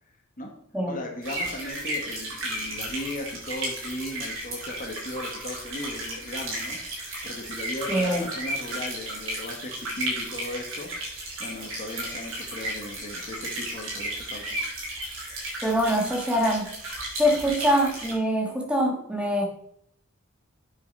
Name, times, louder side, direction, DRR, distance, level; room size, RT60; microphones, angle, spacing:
voice 1, 0.8-14.6 17.4-17.5, left 1 dB, 40° left, 1 dB, 1.4 m, -37 dB
sound 1, 1.2-18.1, right 1 dB, 65° right, 4.5 m, -34 dB
voice 2, 7.9-8.3 15.6-16.7 17.2-19.4, equal, 5° right, 1 dB, 1.6 m, -24 dB
8.9 x 6.7 x 5.3 m, 0.71 s
head